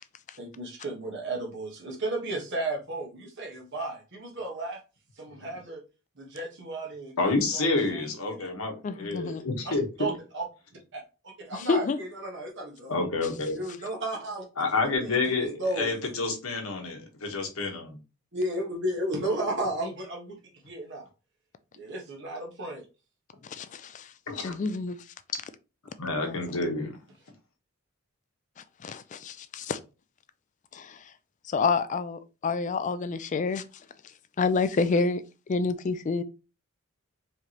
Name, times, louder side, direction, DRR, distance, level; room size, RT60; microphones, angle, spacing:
voice 1, 0.4-4.8 5.2-5.8 6.2-8.5 9.6-10.5 10.9-12.9 13.5-14.5 15.0-15.9 18.3-20.4 20.6-21.0 21.7-22.8, right 1 dB, 55° right, 1.3 m, -34 dB
voice 2, 7.2-9.8 12.9-13.6 14.6-18.0 24.3-24.6 26.0-27.0, left 3 dB, 70° left, 1.2 m, -29 dB
voice 3, 8.8-9.4 11.5-12.0 23.4-25.0 26.2-26.9 28.8-29.8 30.7-31.1 31.5-33.6 34.4-35.2 35.5-36.2, left 4 dB, 35° left, 0.3 m, -29 dB
4.7 x 3.3 x 2.9 m
head